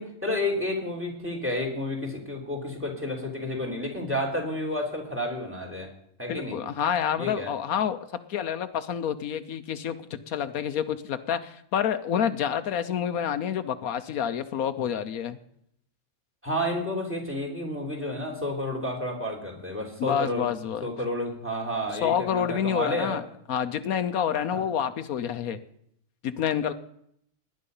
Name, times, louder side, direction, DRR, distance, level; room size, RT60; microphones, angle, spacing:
voice 1, 0.0-5.9 6.2-6.6 7.2-7.5 16.4-20.5 20.8-23.2 24.5-24.6, left 1 dB, 10° right, 3 dB, 3.5 m, -31 dB
voice 2, 6.3-8.0 8.3-15.4 20.0-20.9 22.0-23.2 23.5-25.6 26.2-26.7, left 8 dB, 80° left, 10 dB, 1.2 m, -28 dB
18.0 x 11.0 x 5.5 m, 0.71 s
omnidirectional pair, 1.5 m